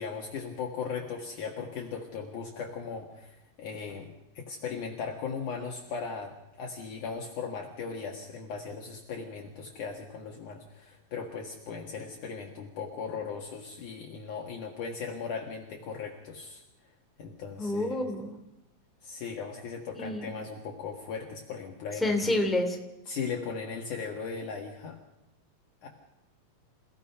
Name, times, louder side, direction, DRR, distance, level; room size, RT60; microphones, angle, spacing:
voice 1, 0.0-16.6 17.2-18.0 19.0-22.2 23.1-25.0 25.8-25.9, left 5 dB, 60° left, 0 dB, 3.1 m, -38 dB
voice 2, 17.6-18.4 20.0-20.3 22.0-22.8, left 1 dB, ahead, 3 dB, 2.1 m, -28 dB
28.5 x 17.0 x 5.7 m, 0.96 s
omnidirectional pair, 4.2 m